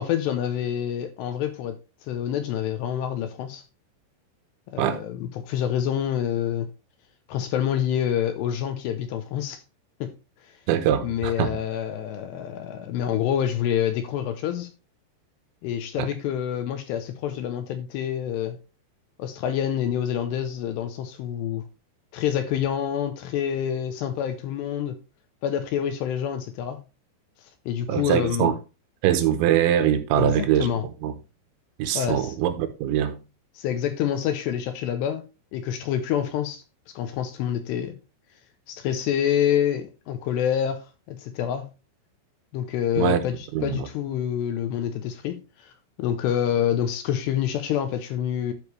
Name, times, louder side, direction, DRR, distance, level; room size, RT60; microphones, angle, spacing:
voice 1, 0.0-3.6 4.7-6.7 7.3-9.6 10.0-10.1 10.4-10.6 11.0-14.7 15.6-18.6 19.2-21.7 22.1-25.0 25.4-26.8 27.7-28.5 30.1-30.9 31.9-32.3 33.6-35.2 35.5-36.6 37.0-38.0 38.7-41.7 42.5-45.7 46.0-48.5, left 9 dB, 80° left, 2.6 m, -27 dB
voice 2, 10.7-11.5 16.0-16.1 27.9-28.5 29.0-30.7 31.0-31.1 31.8-33.2 43.0-43.2 43.5-43.8, right 10 dB, 80° right, 3.2 m, -22 dB
12.0 x 4.9 x 3.2 m
omnidirectional pair, 5.4 m